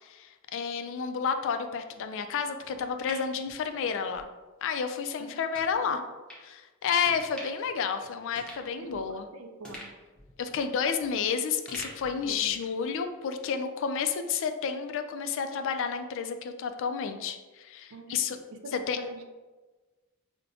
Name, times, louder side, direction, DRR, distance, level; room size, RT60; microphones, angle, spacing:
voice 1, 0.0-4.2 4.6-6.0 6.5-9.3 10.4-18.4 18.7-19.0, left 6 dB, 65° left, 8 dB, 0.3 m, -31 dB
sound 1, 2.6-4.2 4.6-4.7 5.5-5.7 6.3-6.5 7.0-7.7 8.0-8.1 8.4-9.2 9.6-11.2 11.7-12.8 13.2-13.3, equal, 5° left, 0.8 m, -46 dB
voice 2, 5.7-6.1 8.8-9.9 12.2-12.6 17.9-18.2 18.5-19.2, right 3 dB, 75° right, 5 dB, 0.4 m, -44 dB
5.4 x 2.1 x 2.7 m, 1.3 s
head